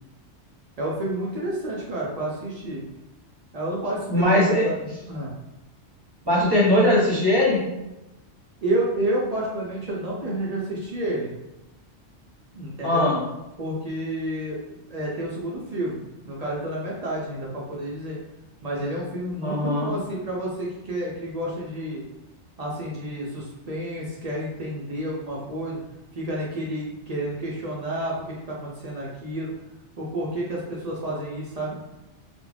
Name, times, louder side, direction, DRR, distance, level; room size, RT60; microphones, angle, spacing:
voice 1, 0.8-2.8 3.5-4.7 5.1-5.3 8.6-11.3 12.5-13.1 13.6-18.2 18.6-22.0 22.6-25.8 26.1-29.5 30.0-31.8, right 1 dB, 60° right, -5 dB, 0.4 m, -30 dB
voice 2, 4.1-4.7 6.2-7.6 12.8-13.2 19.4-19.9, left 1 dB, 25° right, -7 dB, 0.6 m, -20 dB
2.4 x 2.1 x 3.2 m, 0.96 s
omnidirectional pair, 1.2 m